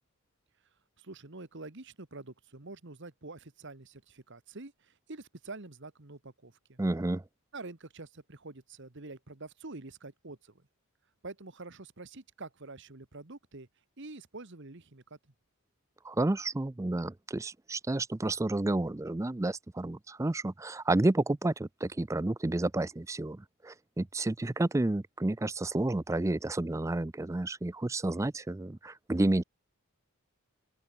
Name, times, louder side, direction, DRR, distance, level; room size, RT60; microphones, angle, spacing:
voice 1, 1.0-6.8 7.5-10.6 11.2-13.7 14.0-15.2, right 3 dB, 55° right, 1.6 m, -46 dB
voice 2, 6.8-7.2 16.0-29.4, right 2 dB, 15° right, 0.4 m, -30 dB
open air
head